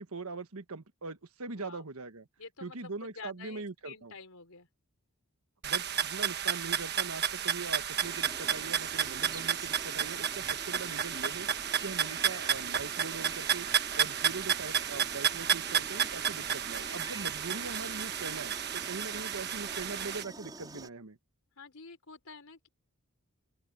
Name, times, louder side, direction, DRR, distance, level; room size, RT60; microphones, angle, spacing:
voice 1, 0.0-2.3 2.6-4.1 5.6-11.5 11.8-13.7 13.9-21.2, right 3 dB, 75° right, 1.4 m, -41 dB
voice 2, 1.5-1.9 2.4-4.7 17.5-17.7 21.6-22.7, left 5 dB, 75° left, 3.9 m, -49 dB
sound 1, 5.6-20.2, right 8 dB, 50° right, 1.3 m, -32 dB
sound 2, 8.0-20.9, right 2 dB, 20° right, 4.8 m, -47 dB
open air
head